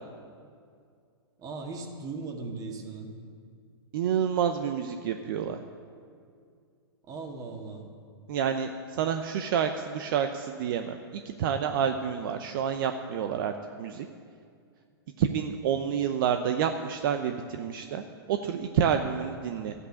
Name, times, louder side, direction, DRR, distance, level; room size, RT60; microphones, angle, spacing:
voice 1, 1.4-3.1 7.1-7.9, right 3 dB, 25° right, 2 dB, 2.1 m, -38 dB
voice 2, 3.9-5.6 8.3-13.5 13.8-14.1 15.2-19.7, right 8 dB, 55° right, 7 dB, 0.8 m, -29 dB
13.0 x 8.3 x 8.4 m, 2.3 s
hypercardioid pair, 115°, 14 cm